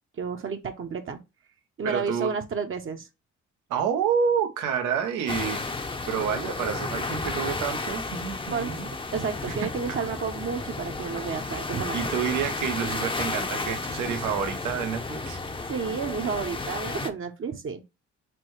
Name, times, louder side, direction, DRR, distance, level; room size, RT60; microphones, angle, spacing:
voice 1, 0.2-1.2 1.8-3.1 8.5-8.7 9.1-12.1 15.7-17.8, right 6 dB, 45° right, 0.8 m, -31 dB
voice 2, 1.8-2.3 3.7-5.6 6.0-8.9 9.5-9.6 9.9-10.0 11.9-15.4, right 7 dB, 90° right, 0.9 m, -28 dB
sound 1, 5.3-17.1, left 3 dB, 15° left, 0.6 m, -33 dB
6.1 x 2.2 x 3.1 m
cardioid pair, 90°, 30 cm